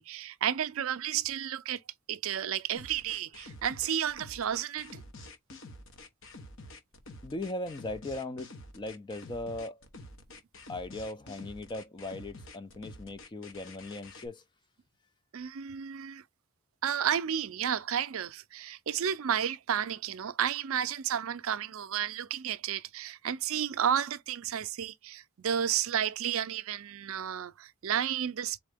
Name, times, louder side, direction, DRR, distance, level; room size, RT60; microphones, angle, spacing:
voice 1, 0.0-1.8 2.1-5.0 15.3-16.2 16.8-28.6, right 9 dB, 65° right, 0.4 m, -32 dB
sound 1, 2.7-14.3, left 2 dB, 60° left, 1.1 m, -48 dB
voice 2, 7.2-9.8 10.7-14.4, left 2 dB, 20° left, 0.3 m, -38 dB
4.1 x 3.7 x 3.5 m
head